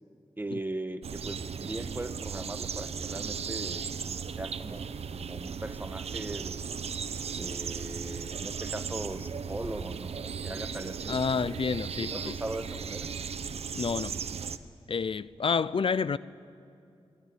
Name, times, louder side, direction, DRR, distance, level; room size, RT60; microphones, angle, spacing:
voice 1, 0.4-6.8 7.3-11.2 12.0-13.1, right 1 dB, 20° right, 1.5 m, -39 dB
sound 1, 1.0-14.6, right 6 dB, 85° right, 0.9 m, -36 dB
voice 2, 11.1-12.3 13.7-14.1 14.9-16.2, left 5 dB, 60° left, 0.6 m, -29 dB
28.5 x 20.0 x 9.5 m
cardioid pair, 65°, 10 cm